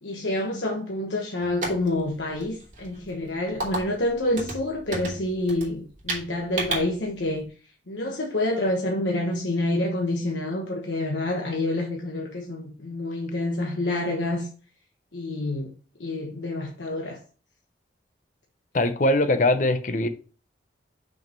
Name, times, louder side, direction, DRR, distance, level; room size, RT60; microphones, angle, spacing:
voice 1, 0.0-7.4 7.9-14.5 15.1-15.7 16.0-17.2, left 1 dB, 85° left, 1.2 m, -28 dB
sound 1, 1.4-7.4, right 2 dB, 45° right, 2.6 m, -34 dB
voice 2, 18.7-20.1, left 1 dB, 45° left, 0.7 m, -21 dB
6.2 x 4.7 x 4.5 m
head